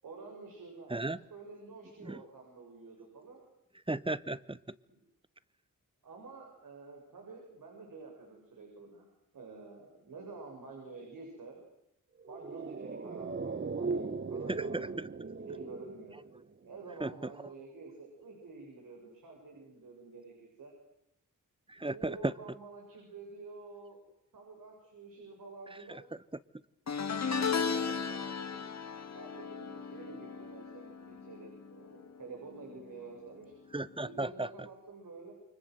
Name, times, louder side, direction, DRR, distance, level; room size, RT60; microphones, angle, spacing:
voice 1, 0.0-3.4 6.0-9.1 9.3-11.6 12.3-16.1 16.6-20.7 21.8-24.0 24.3-26.0 27.2-28.6 29.1-33.5 34.1-35.3, right 3 dB, 85° right, 7.4 m, -49 dB
voice 2, 3.9-4.6 14.5-15.1 17.0-17.1 21.7-22.3 27.1-27.3 33.7-34.5, right 2 dB, 15° right, 1.1 m, -35 dB
sound 1, 12.2-16.8 17.0-17.1, right 4 dB, 35° right, 1.2 m, -38 dB
sound 2, 26.9-32.3 32.5-32.9 34.1-34.2, left 6 dB, 55° left, 2.2 m, -36 dB
29.5 x 24.5 x 8.1 m
cardioid pair, 80°, 32 cm